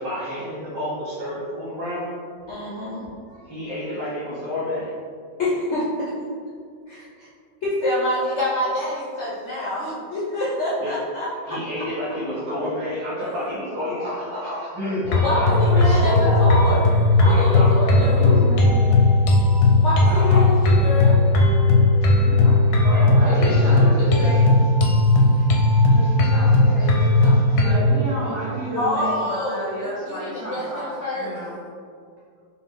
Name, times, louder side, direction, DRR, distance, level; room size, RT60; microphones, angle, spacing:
voice 1, 0.0-2.1 3.3-4.9 10.8-10.9 11.4-16.5 17.2-17.8 20.0-20.5 22.9-23.9 25.1-25.3 25.6-26.3 27.0-27.1 27.5-27.6, left 1 dB, 65° right, -12 dB, 1.8 m, -29 dB
voice 2, 2.5-3.0 5.4-5.8 7.6-11.6 15.1-18.6 19.8-21.2 28.7-29.7 30.1-31.4, left 1 dB, 70° left, -8 dB, 0.6 m, -26 dB
sound 1, 15.0-27.7, left 2 dB, 85° left, 1.4 m, -17 dB
voice 3, 17.8-19.2 22.1-24.0 27.5-31.6, right 1 dB, 50° right, -12 dB, 1.4 m, -32 dB
voice 4, 23.2-24.7 25.9-28.4 28.6-29.1, left 1 dB, 80° right, -10 dB, 2.1 m, -33 dB
4.8 x 2.2 x 3.6 m, 2.2 s
omnidirectional pair, 2.1 m